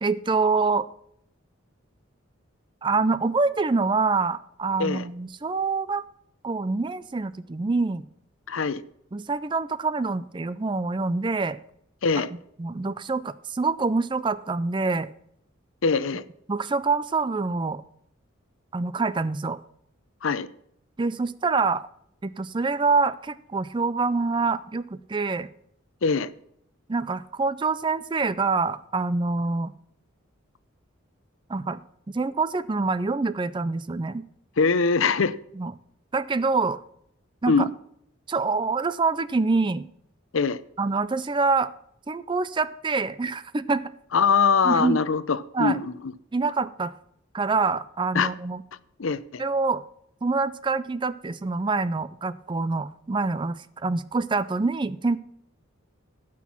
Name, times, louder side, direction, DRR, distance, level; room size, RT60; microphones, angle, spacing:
voice 1, 0.0-0.9 2.8-6.0 6.4-8.0 9.1-11.6 12.6-15.1 16.5-17.8 18.7-19.6 21.0-21.9 22.2-25.5 26.9-29.7 31.5-31.8 32.1-34.2 35.6-35.7 36.1-36.8 37.4-37.7 38.3-39.9 40.8-41.7 42.1-43.8 44.6-45.0 45.5-45.8 46.3-46.9 47.3-48.6 49.4-49.8 50.2-53.6 53.8-55.2, right 4 dB, 25° right, 15 dB, 0.4 m, -25 dB
voice 2, 8.5-8.8 12.0-12.3 15.8-16.2 20.2-20.5 26.0-26.3 34.6-35.3 37.5-37.7 40.3-40.6 44.1-45.9 48.1-48.3 49.0-49.4, left 5 dB, 75° left, 15 dB, 0.6 m, -22 dB
15.5 x 6.1 x 6.0 m, 0.72 s
head